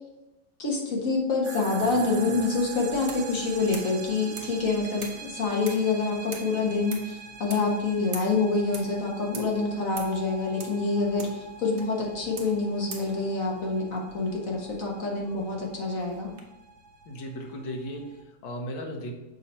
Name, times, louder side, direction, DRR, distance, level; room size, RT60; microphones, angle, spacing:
voice 1, 0.6-16.3, left 3 dB, 50° left, -1 dB, 1.4 m, -27 dB
sound 1, 1.4-18.2, right 5 dB, 80° right, 1.4 m, -44 dB
sound 2, 1.8-16.4, right 4 dB, 55° right, 0.6 m, -46 dB
voice 2, 17.1-19.1, equal, 75° left, 1 dB, 1.8 m, -36 dB
6.7 x 2.9 x 5.5 m, 1.0 s
omnidirectional pair, 2.1 m